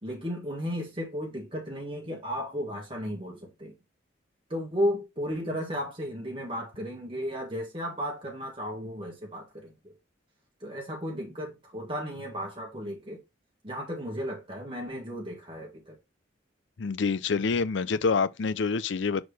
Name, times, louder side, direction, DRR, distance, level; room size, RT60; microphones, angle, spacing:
voice 1, 0.0-3.7 4.5-9.9 10.6-13.2 13.6-16.0, equal, 25° right, 1.8 m, -34 dB
voice 2, 16.8-19.2, left 4 dB, 70° left, 0.5 m, -27 dB
6.3 x 4.7 x 3.4 m
head